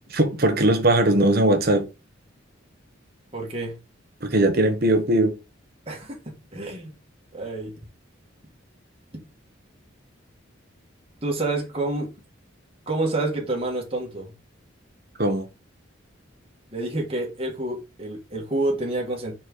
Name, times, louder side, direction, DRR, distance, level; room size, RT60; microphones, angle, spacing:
voice 1, 0.1-1.9 4.2-5.4 15.2-15.5, right 1 dB, 50° right, 1.3 m, -20 dB
voice 2, 3.3-3.8 5.9-6.2 6.5-6.9 7.3-7.7 11.2-12.1 12.9-14.3 16.7-19.3, right 2 dB, 30° right, 1.9 m, -28 dB
4.8 x 4.4 x 4.7 m
head